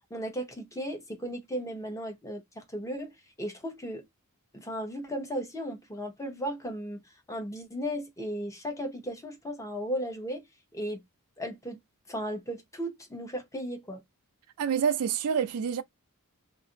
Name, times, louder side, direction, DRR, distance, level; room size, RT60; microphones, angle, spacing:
voice 1, 0.1-3.1 3.4-4.0 4.5-7.0 7.3-10.4 10.7-11.0 11.4-11.8 12.1-14.0, equal, 15° left, 0.8 m, -35 dB
voice 2, 14.6-15.8, right 7 dB, 75° right, 0.4 m, -27 dB
2.5 x 2.4 x 3.7 m
head